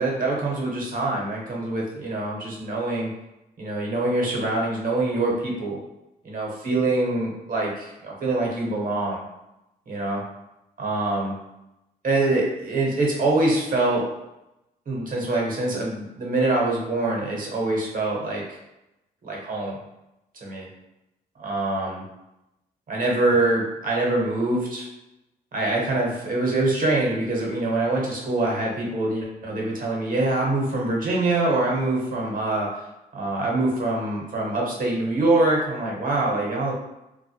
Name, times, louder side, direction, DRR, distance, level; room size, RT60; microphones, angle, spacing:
voice 1, 0.0-3.1 3.6-5.8 6.2-9.2 9.9-10.2 10.8-11.3 12.0-14.0 14.9-18.6 19.2-19.8 20.4-20.7 21.4-22.0 22.9-24.9 25.5-32.7 33.1-36.7, right 2 dB, 50° right, -2 dB, 0.9 m, -24 dB
2.2 x 2.0 x 2.8 m, 0.90 s
supercardioid pair, 60°, 18 cm